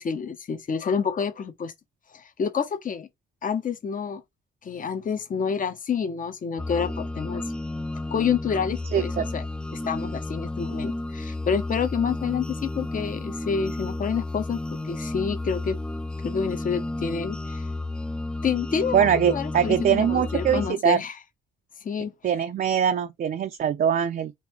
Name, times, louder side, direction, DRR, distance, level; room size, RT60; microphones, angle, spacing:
voice 1, 0.0-1.7 2.1-3.1 3.4-4.2 4.6-7.4 8.1-9.5 9.7-15.8 16.2-17.7 18.4-21.2 21.8-22.1, left 6 dB, 45° left, 1.0 m, -28 dB
sound 1, 6.6-20.7, left 2 dB, 5° left, 0.4 m, -32 dB
voice 2, 8.9-9.2 18.9-21.0 22.2-24.3, right 8 dB, 50° right, 0.6 m, -22 dB
4.0 x 2.7 x 4.5 m
cardioid pair, 80°, 19 cm